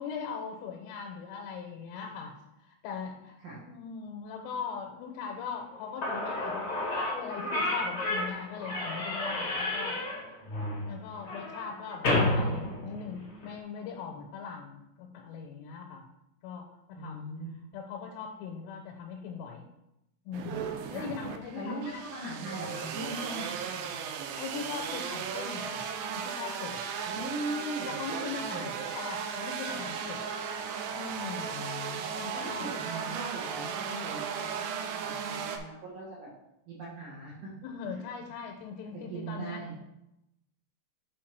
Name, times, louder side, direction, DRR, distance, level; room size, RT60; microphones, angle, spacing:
voice 1, 0.0-6.8 7.1-10.0 10.8-16.0 16.4-17.3 17.7-19.6 20.3-22.0 24.4-26.8 27.5-27.6 27.9-30.2 30.9-31.5 32.1-32.7 37.6-39.6, left 6 dB, 90° left, 1 dB, 3.3 m, -40 dB
Slam / Squeak, 5.7-5.8 6.0-13.5, left 1 dB, 70° left, 1.0 m, -31 dB
voice 2, 17.0-17.5 20.9-21.1 21.6-24.0 27.0-28.0 28.5-28.7 31.4-32.1 32.3-36.3 36.7-37.5 37.9-38.0 39.1-39.7, right 1 dB, 65° right, -5 dB, 2.0 m, -40 dB
sound 1, 20.3-35.6, right 7 dB, 85° right, 2.4 m, -36 dB
8.1 x 4.2 x 4.6 m, 0.87 s
omnidirectional pair, 5.6 m